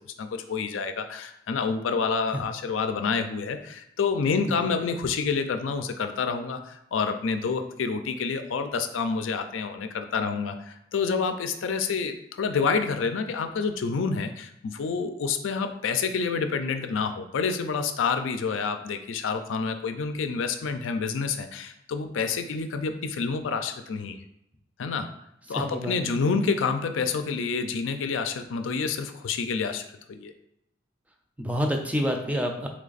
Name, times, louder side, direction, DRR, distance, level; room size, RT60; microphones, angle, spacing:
voice 1, 0.2-24.2 24.8-25.1 25.5-30.3, left 5 dB, 90° left, 8 dB, 0.4 m, -28 dB
voice 2, 25.5-26.2 31.4-32.7, equal, 10° right, 3 dB, 0.4 m, -28 dB
3.3 x 3.3 x 3.9 m, 0.82 s
head